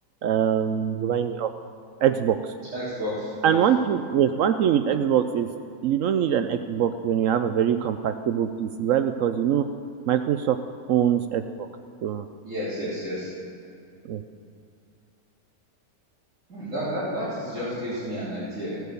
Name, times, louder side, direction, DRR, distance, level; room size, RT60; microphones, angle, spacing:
voice 1, 0.2-1.5 2.0-2.5 3.4-5.5 5.8-9.6 10.1-10.6 10.9-11.4 12.0-12.3 14.1-14.2, right 9 dB, 70° right, 9 dB, 0.8 m, -23 dB
voice 2, 2.7-3.6 12.4-13.3 16.5-18.8, equal, 50° right, -11 dB, 3.8 m, -31 dB
16.0 x 9.3 x 6.8 m, 2.4 s
omnidirectional pair, 1.8 m